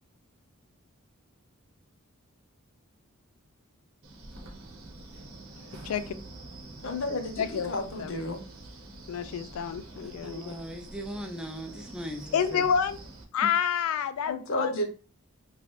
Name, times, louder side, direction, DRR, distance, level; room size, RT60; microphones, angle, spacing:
Wind, 4.0-13.2, right 2 dB, 80° right, 0.8 m, -46 dB
voice 1, 5.7-6.1 7.4-7.7 8.0-8.1 9.1-10.5 12.3-13.0 13.3-14.7, left 7 dB, 85° left, 0.3 m, -29 dB
voice 2, 6.8-8.4 14.2-14.9, left 2 dB, 65° left, 0.7 m, -31 dB
voice 3, 10.0-12.6 13.4-13.5, equal, 5° right, 0.4 m, -39 dB
3.1 x 2.4 x 3.1 m
head